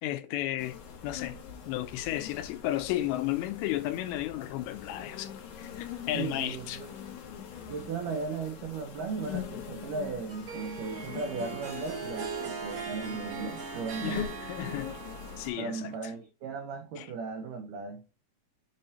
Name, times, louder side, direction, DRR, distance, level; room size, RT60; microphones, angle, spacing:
voice 1, 0.0-0.8 1.0-1.4 1.7-5.3 5.6-6.8 14.0-15.0 15.4-15.9 17.0-17.1, left 14 dB, 85° left, 2.9 m, -33 dB
sound 1, 0.6-15.5, left 8 dB, 70° left, 1.8 m, -43 dB
voice 2, 6.1-6.9 7.7-14.3 15.6-18.0, right 5 dB, 85° right, 1.8 m, -36 dB
Harp, 10.3-16.1, right 6 dB, 65° right, 1.4 m, -40 dB
7.0 x 2.8 x 5.4 m
omnidirectional pair, 4.9 m